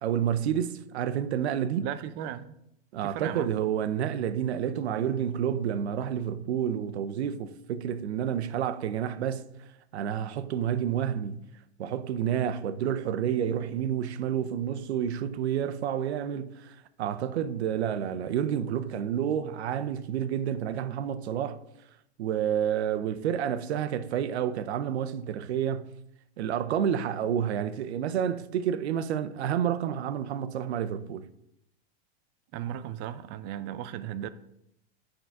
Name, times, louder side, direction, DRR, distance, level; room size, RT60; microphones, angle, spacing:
voice 1, 0.0-1.9 2.9-9.4 9.9-11.4 11.8-16.7 17.0-21.6 22.2-25.9 26.4-31.3, right 9 dB, 80° right, 0.7 m, -29 dB
voice 2, 1.8-2.6 3.0-3.6 32.5-34.3, right 11 dB, 35° right, 0.5 m, -36 dB
9.4 x 3.9 x 4.7 m
hypercardioid pair, 125°, 32 cm